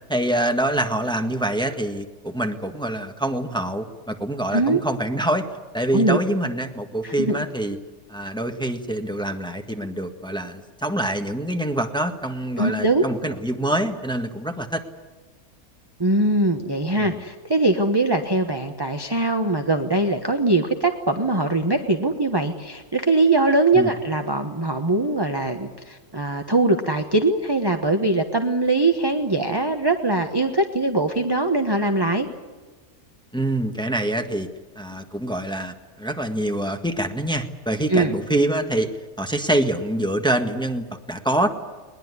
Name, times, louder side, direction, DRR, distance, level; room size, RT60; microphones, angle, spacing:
voice 1, 0.1-5.5 5.7-7.8 8.1-14.8 17.0-17.2 23.7-23.9 33.3-34.5 34.7-38.9 39.2-41.5, right 1 dB, 5° left, 5 dB, 1.5 m, -25 dB
voice 2, 7.0-7.4 12.6-13.0 16.0-32.3 37.9-38.1, right 2 dB, 15° right, 5 dB, 1.1 m, -21 dB
21.5 x 20.5 x 9.7 m, 1.3 s
omnidirectional pair, 1.6 m